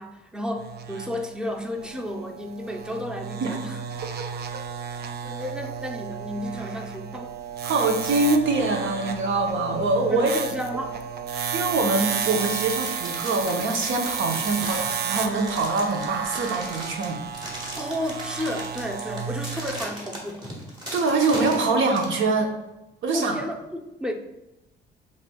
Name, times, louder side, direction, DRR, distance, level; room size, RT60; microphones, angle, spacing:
voice 1, 0.0-3.8 5.2-7.4 10.1-11.0 14.6-14.8 17.8-20.5 23.1-24.1, equal, 5° right, 4 dB, 0.5 m, -32 dB
sound 1, 0.6-19.8, right 7 dB, 55° right, 0.5 m, -33 dB
voice 2, 7.6-10.3 11.3-17.2 20.9-22.5 23.0-23.4, right 3 dB, 75° right, 3 dB, 0.8 m, -24 dB
sound 2, 12.1-22.2, equal, 20° right, 1.7 m, -38 dB
7.0 x 3.3 x 2.3 m, 0.94 s
cardioid pair, 90°, 20 cm